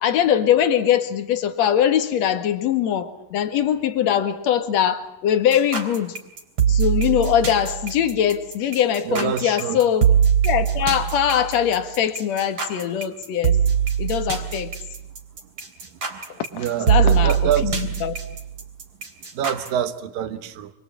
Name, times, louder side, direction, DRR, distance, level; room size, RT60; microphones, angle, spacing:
voice 1, 0.0-6.1 6.7-10.1 10.4-13.6 14.0-14.7 16.6-17.4 17.6-18.1, left 9 dB, 55° left, 8 dB, 2.7 m, -22 dB
sound 1, 5.5-19.7, right 8 dB, 40° right, 4.3 m, -22 dB
voice 2, 9.1-9.8 16.1-16.2 16.5-17.8 19.3-20.7, right 9 dB, 85° right, 10 dB, 3.1 m, -26 dB
29.0 x 23.5 x 8.7 m, 0.85 s
omnidirectional pair, 3.9 m